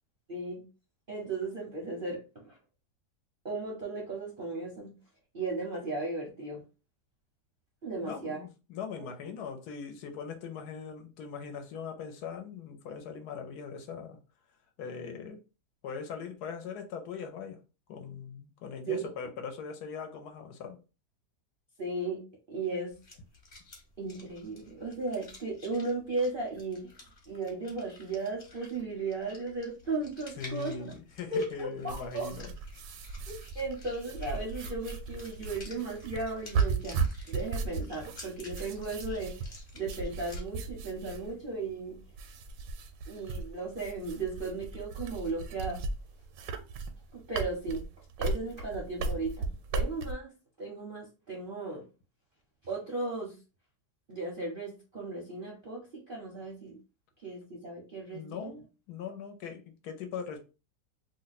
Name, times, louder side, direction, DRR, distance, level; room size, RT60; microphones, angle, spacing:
voice 1, 0.3-0.6 1.1-2.5 3.4-4.9 5.3-6.6 7.8-8.4 18.9-19.1 21.8-22.9 24.0-26.9 27.3-30.8 31.3-32.3 33.3-37.0 37.3-39.4 39.7-42.0 43.1-45.8 47.1-47.8 48.2-50.3 50.6-51.8 52.7-53.4 54.1-56.8 57.2-58.5, right 3 dB, 50° right, 0.6 m, -36 dB
voice 2, 8.0-14.2 14.8-15.4 15.8-17.6 17.9-20.8 30.3-32.5 58.1-60.4, left 6 dB, 70° left, 1.1 m, -40 dB
sound 1, 22.9-40.4, left 2 dB, 35° left, 1.1 m, -52 dB
sound 2, 31.9-50.1, right 4 dB, 85° right, 1.2 m, -36 dB
2.8 x 2.1 x 4.0 m
omnidirectional pair, 1.8 m